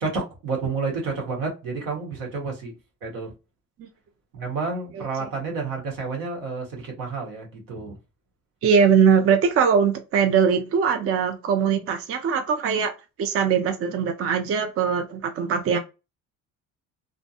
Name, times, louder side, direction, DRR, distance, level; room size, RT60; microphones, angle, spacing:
voice 1, 0.0-2.7 3.0-3.3 4.3-8.0, right 4 dB, 90° right, 1.1 m, -30 dB
voice 2, 8.6-12.9 13.2-15.8, right 6 dB, 45° right, 0.5 m, -21 dB
2.5 x 2.1 x 2.7 m
cardioid pair, 95°, 32 cm